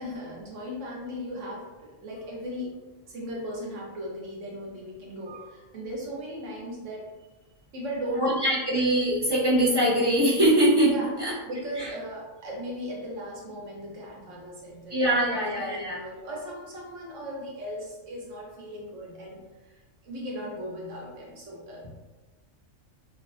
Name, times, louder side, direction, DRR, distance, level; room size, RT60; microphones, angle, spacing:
voice 1, 0.0-2.8 3.1-7.3 7.7-8.4 10.9-11.1 11.5-21.9, equal, 75° right, -3 dB, 1.2 m, -37 dB
voice 2, 8.2-11.3 11.8-11.9 14.9-16.0, right 1 dB, 40° right, -6 dB, 0.3 m, -23 dB
3.2 x 2.1 x 2.5 m, 1.1 s
omnidirectional pair, 1.3 m